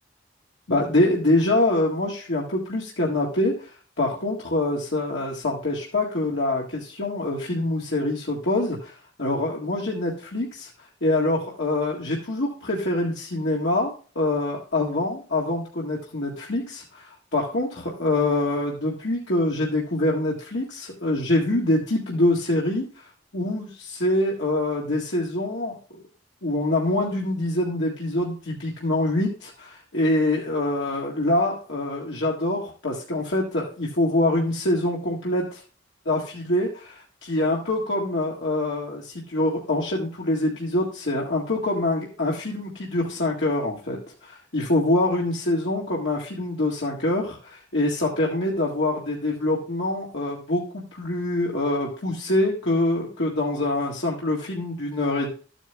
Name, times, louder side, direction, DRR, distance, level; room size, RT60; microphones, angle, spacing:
voice 1, 0.7-8.9 9.2-10.7 11.0-26.0 26.4-35.6 36.1-55.3, left 1 dB, 75° left, -4 dB, 1.9 m, -25 dB
13.0 x 9.0 x 2.2 m, 0.39 s
head